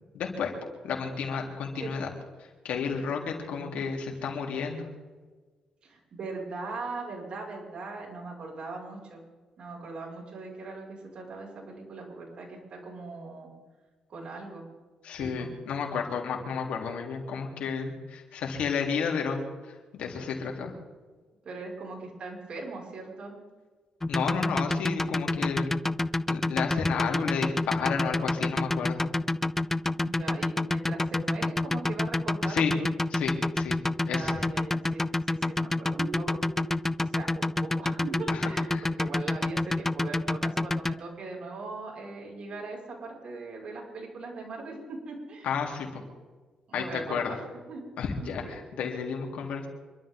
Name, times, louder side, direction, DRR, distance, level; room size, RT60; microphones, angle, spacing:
voice 1, 0.1-0.5 0.8-2.1 2.6-4.9 15.0-19.4 19.7-20.7 24.1-25.7 26.3-29.0 32.5-32.7 33.1-33.8 34.1-34.4 38.3-38.9 45.4-46.0 46.7-47.4 48.0-49.7, left 6 dB, 80° left, 1 dB, 3.6 m, -32 dB
voice 2, 3.4-3.8 5.8-9.2 9.6-13.5 14.1-14.7 15.2-15.5 21.4-23.4 30.0-32.9 34.0-45.5 46.7-47.4 47.7-47.8 48.2-48.6, right 3 dB, 55° right, -1 dB, 6.1 m, -40 dB
sound 1, 24.0-41.0, left 2 dB, 15° left, 0.6 m, -27 dB
sound 2, 35.9-36.8 38.0-38.9, right 4 dB, 75° right, 7.0 m, -40 dB
27.0 x 12.5 x 3.9 m, 1.4 s
cardioid pair, 90°, 2 cm